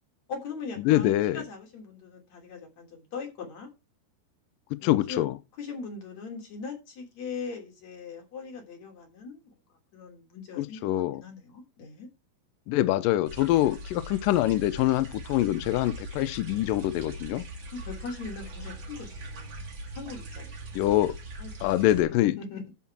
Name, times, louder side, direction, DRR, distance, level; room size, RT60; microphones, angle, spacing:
voice 1, 0.3-3.7 4.8-5.2 5.6-9.5 9.9-12.1 17.7-19.6 19.9-20.5 21.4-21.7 22.0-22.6, left 5 dB, 45° left, 4.2 m, -40 dB
voice 2, 0.8-1.4 4.8-5.3 10.6-11.2 12.7-17.4 20.7-21.1 21.6-22.3, left 14 dB, 90° left, 1.9 m, -24 dB
sound 1, 13.3-22.0, right 1 dB, 35° right, 2.2 m, -41 dB
13.0 x 4.9 x 5.9 m
omnidirectional pair, 4.9 m